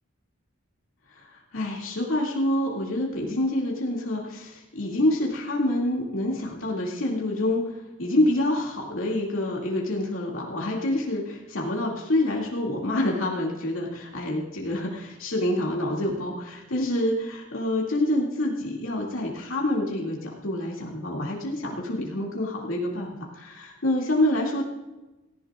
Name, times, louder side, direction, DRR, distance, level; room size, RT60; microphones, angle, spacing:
voice 1, 1.1-24.6, left 1 dB, 80° left, -3 dB, 2.3 m, -27 dB
17.5 x 15.0 x 2.4 m, 1.1 s
head